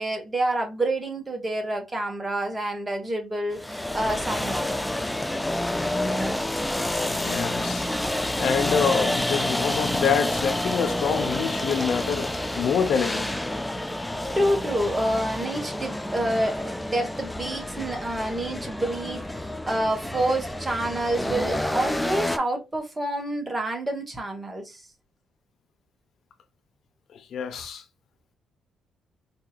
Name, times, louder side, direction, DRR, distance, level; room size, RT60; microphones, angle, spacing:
voice 1, 0.0-4.7 14.3-24.8, right 1 dB, 20° right, 1.4 m, -28 dB
sound 1, 3.5-22.4, left 1 dB, 10° left, 0.4 m, -29 dB
voice 2, 7.0-7.9 8.4-13.3 27.1-27.8, left 7 dB, 65° left, 0.8 m, -26 dB
5.0 x 2.7 x 2.4 m
cardioid pair, 90°, 0 cm